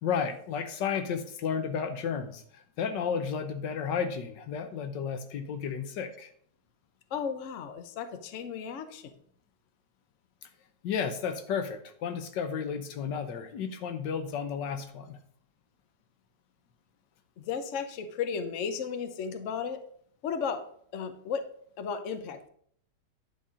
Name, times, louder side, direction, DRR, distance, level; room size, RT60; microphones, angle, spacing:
voice 1, 0.0-6.3 10.8-15.2, left 7 dB, 90° left, 8 dB, 1.5 m, -33 dB
voice 2, 7.1-9.1 17.4-19.8 20.2-20.6 20.9-21.4 21.8-22.5, left 6 dB, 55° left, 9 dB, 1.0 m, -34 dB
10.0 x 4.2 x 4.9 m, 0.62 s
omnidirectional pair, 1.9 m